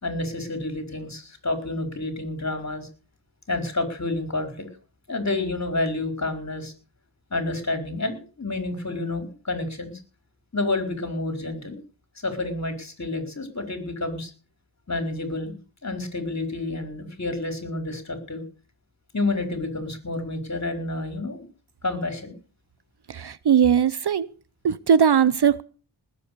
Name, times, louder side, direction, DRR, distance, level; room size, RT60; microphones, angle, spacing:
voice 1, 0.0-2.9 3.5-4.7 5.1-6.7 7.3-9.9 10.5-11.8 12.2-14.3 14.9-15.5 15.8-18.4 19.1-21.5 21.8-22.4, left 2 dB, 35° left, 4.6 m, -29 dB
voice 2, 23.1-24.3 24.6-25.6, right 8 dB, 55° right, 0.7 m, -19 dB
19.5 x 8.1 x 6.8 m
wide cardioid pair, 80°, 48 cm